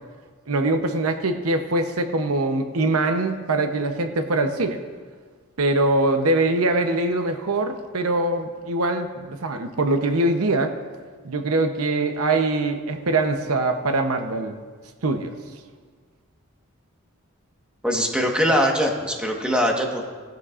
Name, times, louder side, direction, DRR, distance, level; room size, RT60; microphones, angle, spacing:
voice 1, 0.5-4.8 5.6-10.7 11.2-14.5 15.0-15.3, right 2 dB, 75° right, 6 dB, 0.8 m, -23 dB
voice 2, 17.8-20.1, equal, 5° right, 0 dB, 1.3 m, -22 dB
18.0 x 13.0 x 2.5 m, 1.6 s
head